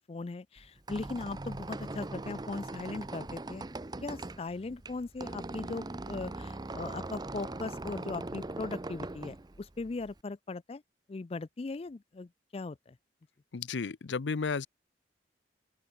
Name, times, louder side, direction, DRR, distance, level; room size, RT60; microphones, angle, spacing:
voice 1, 0.0-3.6 4.0-10.8 11.1-13.0, left 3 dB, 35° left, 0.4 m, -39 dB
Squeak, 0.6-10.2, right 2 dB, 20° right, 0.6 m, -41 dB
voice 2, 13.5-14.7, left 4 dB, 80° left, 0.6 m, -33 dB
open air
head